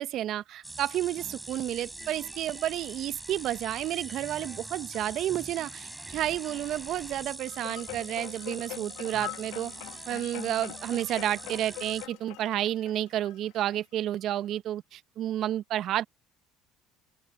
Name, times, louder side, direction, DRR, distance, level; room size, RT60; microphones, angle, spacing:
voice 1, 0.0-9.7 10.1-16.0, right 12 dB, 60° right, 1.2 m, -31 dB
sound 1, 0.6-12.1, right 2 dB, 10° right, 6.0 m, -43 dB
sound 2, 7.5-14.0 14.5-14.6, left 22 dB, 80° left, 2.0 m, -43 dB
open air
supercardioid pair, 80°, 0 cm